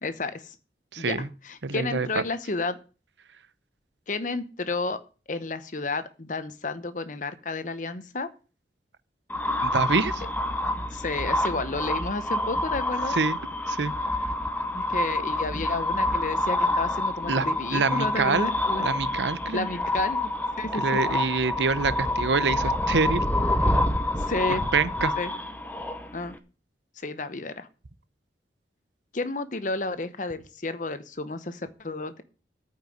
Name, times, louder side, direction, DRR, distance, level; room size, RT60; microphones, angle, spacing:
voice 1, 0.0-0.6 1.0-2.8 4.1-5.0 5.3-8.3 10.9-13.2 14.7-18.9 19.5-20.3 20.6-21.0 24.2-24.6 25.2-25.3 26.1-26.4 27.0-27.7 29.1-32.2, left 3 dB, 45° left, 0.9 m, -31 dB
voice 2, 0.9-1.3 1.6-2.1 9.6-10.2 13.1-13.4 13.7-13.9 17.3-18.5 18.8-19.7 20.7-23.2 24.7-25.1, right 4 dB, 85° right, 0.7 m, -26 dB
sound 1, 9.3-26.4, left 1 dB, 10° left, 0.9 m, -27 dB
9.0 x 5.6 x 7.8 m
head